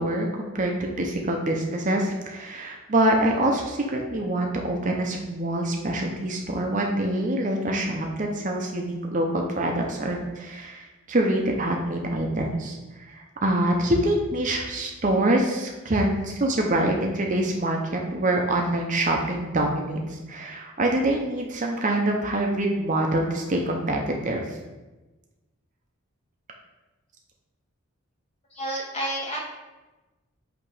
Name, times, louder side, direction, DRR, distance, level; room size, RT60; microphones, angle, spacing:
voice 1, 0.0-12.8 13.1-20.0 20.3-24.5, right 1 dB, 35° right, 1 dB, 0.7 m, -25 dB
voice 2, 28.5-29.4, right 1 dB, 30° left, -3 dB, 1.5 m, -30 dB
7.9 x 3.0 x 4.9 m, 1.1 s
head